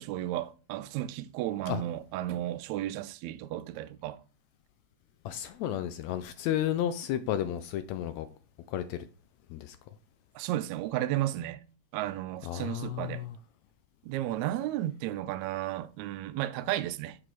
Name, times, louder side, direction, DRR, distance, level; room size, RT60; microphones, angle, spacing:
voice 1, 0.0-4.2 10.3-11.6 11.9-13.2 14.0-17.2, right 14 dB, 80° right, 1.8 m, -33 dB
voice 2, 5.2-8.3 8.7-9.0 9.5-9.8 12.4-13.4, left 11 dB, 80° left, 1.7 m, -32 dB
6.8 x 5.0 x 4.6 m
omnidirectional pair, 3.4 m